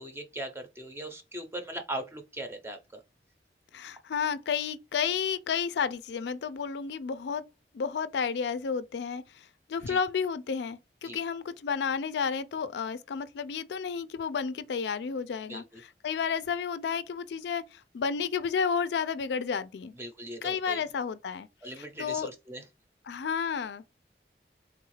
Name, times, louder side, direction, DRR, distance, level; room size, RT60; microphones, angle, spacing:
voice 1, 0.0-3.0 9.9-10.0 11.0-11.2 15.5-15.8 19.9-20.8 21.6-22.6, right 1 dB, 15° right, 0.6 m, -39 dB
voice 2, 3.7-7.5 7.7-19.9 20.4-21.5 21.8-22.3 23.1-23.8, left 6 dB, 75° left, 0.4 m, -31 dB
3.5 x 2.3 x 3.1 m
head